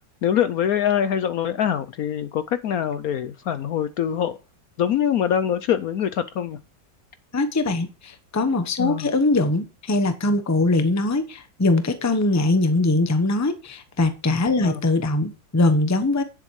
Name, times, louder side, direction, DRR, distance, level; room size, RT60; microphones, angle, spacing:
voice 1, 0.2-4.4 4.8-6.6 8.8-9.1 14.6-14.8, left 9 dB, 65° left, 12 dB, 1.0 m, -24 dB
voice 2, 7.3-16.2, left 2 dB, 15° left, 9 dB, 0.7 m, -22 dB
10.0 x 7.6 x 4.7 m, 0.33 s
omnidirectional pair, 1.9 m